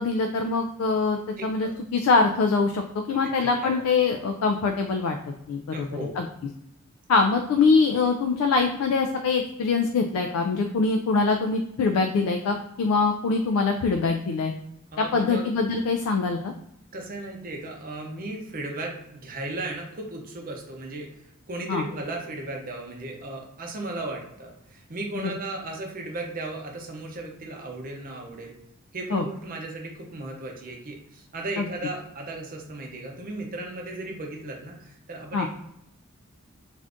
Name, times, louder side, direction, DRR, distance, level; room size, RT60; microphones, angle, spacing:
voice 1, 0.0-5.2 5.5-6.3 7.1-14.5 15.0-16.5 21.7-21.9 25.2-25.4 29.1-29.3 31.6-31.7 35.3-35.5, left 4 dB, 75° left, 5 dB, 0.3 m, -23 dB
voice 2, 1.4-1.7 3.1-3.8 5.7-6.2 14.9-15.4 16.9-21.1 21.5-28.5 28.9-35.5, right 2 dB, 40° right, 1 dB, 0.6 m, -36 dB
2.5 x 2.5 x 3.4 m, 0.79 s
head